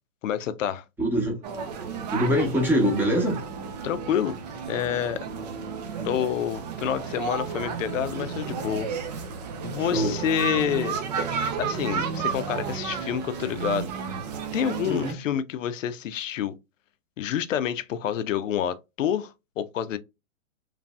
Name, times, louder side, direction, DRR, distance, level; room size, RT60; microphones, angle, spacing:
voice 1, 0.2-0.8 3.8-4.4 4.7-5.3 6.0-8.9 9.6-11.0 11.6-13.9 14.5-16.5 17.2-20.0, left 9 dB, 70° left, 0.5 m, -28 dB
voice 2, 1.0-1.4 2.1-3.4 9.8-10.2 14.8-15.2, equal, 5° right, 0.8 m, -24 dB
sound 1, 1.4-15.1, right 6 dB, 35° right, 0.4 m, -32 dB
3.1 x 2.5 x 2.2 m
hypercardioid pair, 130°, 41 cm